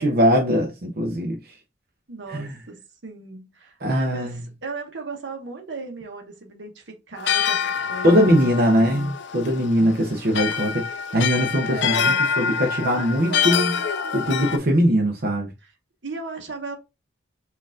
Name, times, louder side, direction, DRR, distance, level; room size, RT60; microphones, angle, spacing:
voice 1, 0.0-1.4 2.3-2.5 3.8-4.4 8.0-10.9 11.1-13.8 14.1-15.5, equal, 50° right, 0.7 m, -21 dB
voice 2, 2.1-9.1 11.7-12.3 12.8-14.4 15.6-15.7 16.0-16.8, right 3 dB, 65° right, 1.0 m, -36 dB
sound 1, 7.2-14.6, left 7 dB, 65° left, 0.4 m, -26 dB
4.5 x 2.5 x 3.6 m
head